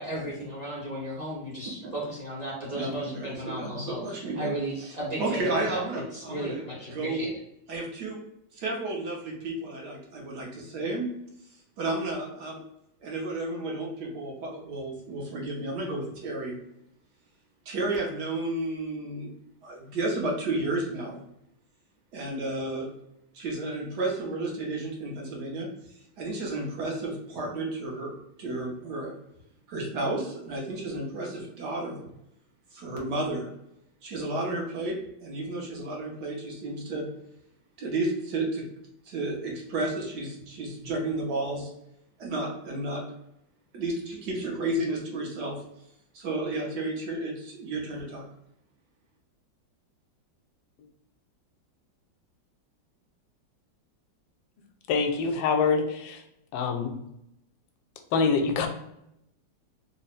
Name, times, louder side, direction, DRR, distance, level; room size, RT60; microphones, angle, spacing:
voice 1, 0.0-5.8 6.1-7.3, right 1 dB, 30° right, -5 dB, 0.8 m, -35 dB
voice 2, 2.7-7.3 7.7-8.2 8.5-11.1 11.8-12.6 13.0-16.6 17.7-19.3 19.6-21.2 22.1-22.9 23.3-25.7 26.2-29.2 29.7-32.0 32.7-33.5 34.0-35.0 35.2-37.1 37.8-38.6 39.1-41.7 42.2-43.0 43.7-45.6 46.1-48.2, right 2 dB, 65° right, -1 dB, 1.3 m, -32 dB
voice 3, 54.9-56.2 56.5-57.0 58.1-58.7, left 5 dB, 90° left, 6 dB, 1.3 m, -25 dB
3.5 x 2.0 x 4.1 m, 0.80 s
omnidirectional pair, 2.0 m